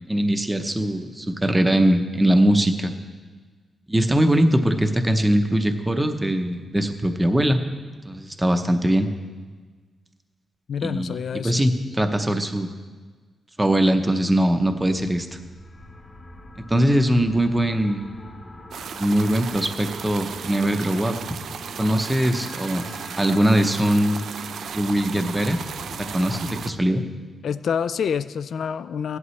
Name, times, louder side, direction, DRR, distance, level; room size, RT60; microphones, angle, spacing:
voice 1, 0.1-2.9 3.9-7.6 8.1-9.1 10.8-11.1 11.4-12.7 13.6-15.3 16.7-18.1 18.9-21.2 21.8-24.2 24.7-25.6 26.1-27.0, right 1 dB, 10° right, 7 dB, 0.7 m, -21 dB
voice 2, 10.7-11.6 27.4-29.2, left 7 dB, 65° left, 14 dB, 0.3 m, -27 dB
sound 1, 14.8-26.8, left 2 dB, 25° left, 1.1 m, -44 dB
sound 2, 18.7-26.7, right 7 dB, 70° right, 0.3 m, -35 dB
16.5 x 11.0 x 3.2 m, 1.4 s
wide cardioid pair, 155°, 0 cm